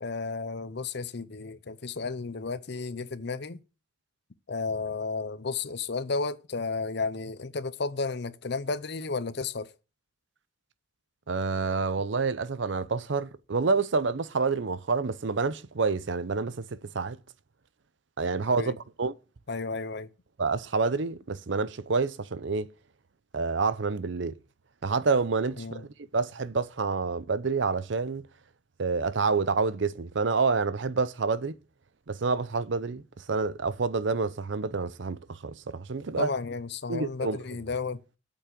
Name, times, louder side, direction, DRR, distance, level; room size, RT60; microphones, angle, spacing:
voice 1, 0.0-3.6 4.5-9.7 18.6-18.8 19.5-20.1 25.6-25.8 36.2-38.0, left 4 dB, 55° left, 0.7 m, -33 dB
voice 2, 11.3-17.2 18.2-19.1 20.4-22.7 23.3-24.3 24.8-28.3 28.8-31.6 32.1-33.0 33.3-36.3 36.9-37.4, right 4 dB, 65° right, 0.6 m, -28 dB
8.6 x 6.0 x 7.6 m
head